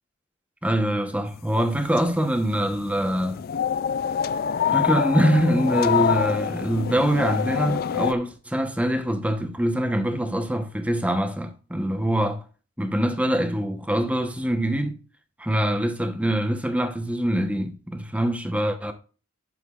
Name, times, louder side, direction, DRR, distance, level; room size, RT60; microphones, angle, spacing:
voice 1, 0.6-3.4 4.7-12.4 12.8-15.0 15.4-18.9, right 1 dB, 5° right, 1.0 m, -24 dB
sound 1, 1.7-8.1, left 8 dB, 45° left, 0.3 m, -26 dB
11.5 x 6.8 x 2.5 m
head